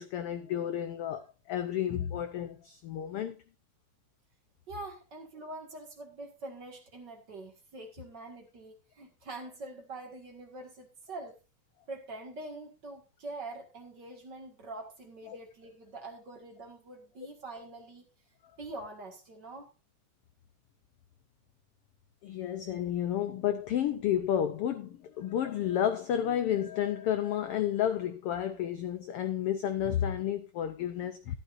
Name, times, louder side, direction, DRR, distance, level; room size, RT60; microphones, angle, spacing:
voice 1, 0.0-3.3 22.2-31.4, left 10 dB, 75° left, 1.3 m, -31 dB
voice 2, 4.7-11.4 11.9-18.0 18.6-19.7, right 2 dB, 40° right, 2.1 m, -44 dB
13.5 x 11.5 x 2.6 m
omnidirectional pair, 3.4 m